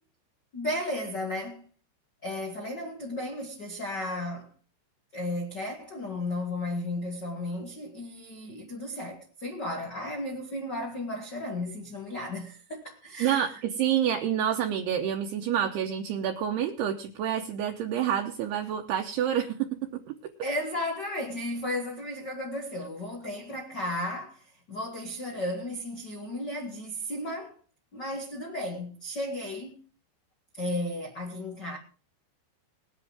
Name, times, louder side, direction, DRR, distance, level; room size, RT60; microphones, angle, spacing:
voice 1, 0.5-1.7 2.2-4.5 5.1-13.5 20.4-27.6 27.9-29.7 30.5-31.8, left 1 dB, 85° left, 0.9 m, -34 dB
voice 2, 13.2-20.3, right 9 dB, 75° right, 2.6 m, -28 dB
20.0 x 10.5 x 3.6 m
omnidirectional pair, 5.4 m